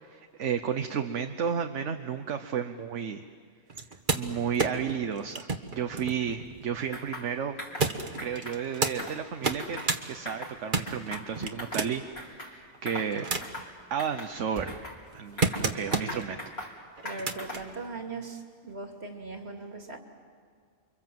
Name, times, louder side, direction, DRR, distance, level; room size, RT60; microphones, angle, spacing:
voice 1, 0.0-3.2 4.1-7.6 8.2-13.4 13.9-14.8 15.1-16.5, right 7 dB, 75° right, 7 dB, 1.3 m, -32 dB
sound 1, 3.7-7.0 7.8-9.0 9.3-10.0 10.4-12.1 12.7-13.7 14.2-16.3 17.0-17.6 18.7-18.8, right 4 dB, 45° right, 1.5 m, -32 dB
sound 2, 6.9-7.3 7.6-7.9 8.2-8.6 8.9-9.9 10.3-10.6 10.9-11.9 12.2-12.5 12.9-13.1 13.4-13.7 14.0-15.0 15.4-16.8 17.1-17.7, left 1 dB, 55° left, 4.3 m, -40 dB
voice 2, 17.0-20.0, right 3 dB, 60° right, 3 dB, 2.8 m, -39 dB
29.5 x 24.5 x 7.6 m, 2.1 s
omnidirectional pair, 1.2 m